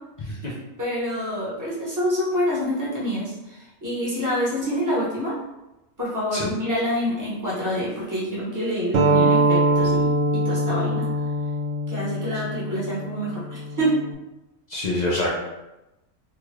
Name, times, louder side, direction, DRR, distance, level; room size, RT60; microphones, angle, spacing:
voice 1, 0.2-0.5 6.3-6.5 14.7-15.3, left 2 dB, 70° left, -5 dB, 0.4 m, -26 dB
voice 2, 0.8-5.4 6.0-11.1 11.9-14.0, equal, 15° right, -8 dB, 0.9 m, -27 dB
sound 1, 8.9-14.1, right 1 dB, 75° right, 0.9 m, -23 dB
2.8 x 2.4 x 3.1 m, 0.98 s
omnidirectional pair, 1.4 m